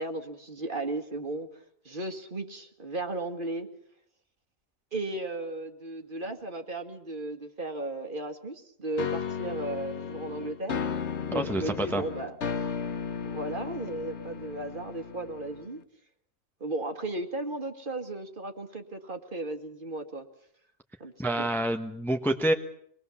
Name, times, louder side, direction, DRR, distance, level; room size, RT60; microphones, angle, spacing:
voice 1, 0.0-1.5 1.8-3.7 4.9-10.8 11.2-12.4 13.2-15.8 16.6-20.3 21.0-21.5, right 2 dB, 40° right, 6 dB, 2.0 m, -35 dB
sound 1, 9.0-15.8, left 6 dB, 55° left, 1.4 m, -35 dB
voice 2, 11.3-12.0 21.2-22.5, right 1 dB, ahead, 5 dB, 1.2 m, -27 dB
24.5 x 20.5 x 7.1 m, 0.67 s
omnidirectional pair, 1.4 m